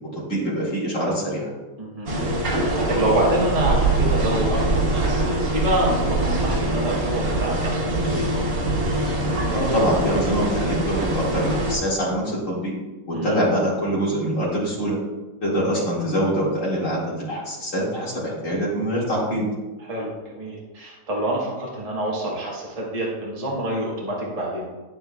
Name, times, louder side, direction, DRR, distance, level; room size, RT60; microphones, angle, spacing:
voice 1, 0.1-1.5 9.5-12.7 13.1-15.0 15.4-19.5, equal, 65° left, -7 dB, 2.5 m, -24 dB
voice 2, 1.8-2.2 2.5-8.2 13.1-13.4 19.9-24.7, right 1 dB, 25° right, -4 dB, 1.5 m, -27 dB
sound 1, 2.1-11.8, right 2 dB, 85° right, 1.9 m, -23 dB
8.9 x 8.0 x 2.3 m, 1.2 s
omnidirectional pair, 1.5 m